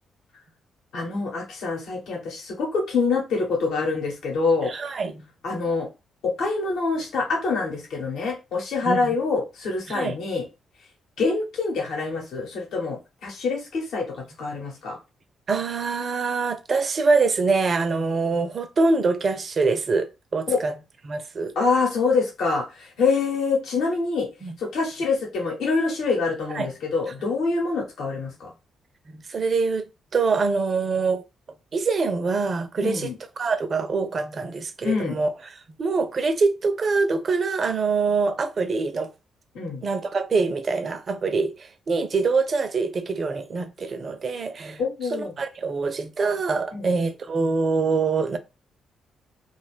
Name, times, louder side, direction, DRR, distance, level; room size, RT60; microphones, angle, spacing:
voice 1, 0.9-4.7 5.4-5.9 6.2-10.4 11.2-15.0 20.5-20.6 21.5-24.3 24.6-28.5 32.8-33.1 34.8-35.2 39.5-39.8 44.8-45.4 46.7-46.9, left 4 dB, 65° left, 1.0 m, -25 dB
voice 2, 4.6-5.3 8.8-9.1 9.9-10.1 15.5-20.7 21.0-21.5 24.4-24.5 26.5-26.7 29.1-31.2 31.7-33.1 33.4-39.1 39.8-44.8 45.1-48.4, right 4 dB, 50° right, 0.5 m, -24 dB
2.5 x 2.3 x 3.3 m
hypercardioid pair, 45°, 0 cm